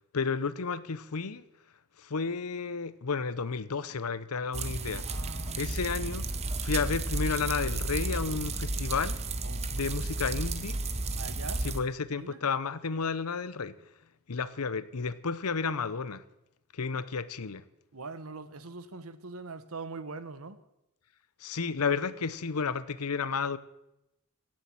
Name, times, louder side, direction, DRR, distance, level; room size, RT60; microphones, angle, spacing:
voice 1, 0.1-1.4 2.0-5.0 5.5-6.3 6.6-9.2 9.7-10.8 11.6-13.7 14.3-16.2 16.7-17.6 21.4-23.6, left 5 dB, 85° left, 16 dB, 0.8 m, -32 dB
sound 1, 4.5-11.8, right 2 dB, 30° right, 0.9 m, -33 dB
voice 2, 5.1-5.7 9.4-9.9 11.2-11.7 12.2-12.4 17.9-20.6, right 3 dB, 75° right, 13 dB, 1.1 m, -42 dB
17.0 x 7.5 x 7.6 m, 0.89 s
head